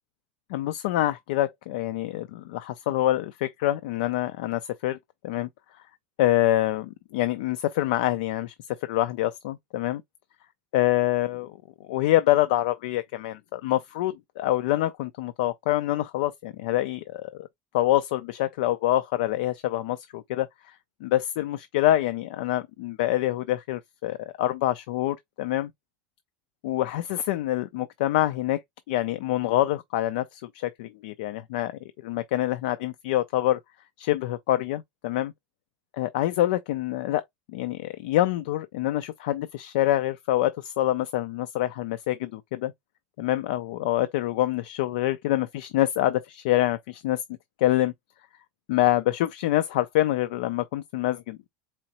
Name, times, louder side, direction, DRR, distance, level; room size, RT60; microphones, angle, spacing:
voice 1, 0.5-5.0 5.2-5.5 6.2-8.5 8.8-10.0 10.7-11.6 11.9-17.5 17.7-20.7 21.0-25.7 26.6-28.6 28.9-33.6 34.0-35.3 35.9-37.2 37.5-42.7 43.2-47.2 47.6-47.9 48.7-51.5, left 14 dB, 80° left, 0.5 m, -26 dB
4.4 x 3.7 x 2.9 m
supercardioid pair, 130°, 4 cm